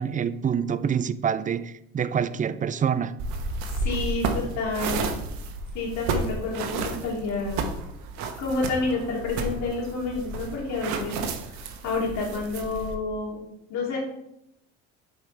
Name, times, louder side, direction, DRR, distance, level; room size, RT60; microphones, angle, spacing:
voice 1, 0.0-3.1, right 7 dB, 25° right, 14 dB, 0.5 m, -26 dB
sound 1, 3.2-13.0, right 3 dB, 70° right, 1.1 m, -32 dB
voice 2, 3.7-5.0 5.7-7.6 8.4-11.2 11.5-13.4 13.7-14.0, left 3 dB, 70° left, -2 dB, 2.7 m, -29 dB
8.0 x 5.3 x 3.3 m, 0.80 s
supercardioid pair, 75°, 29 cm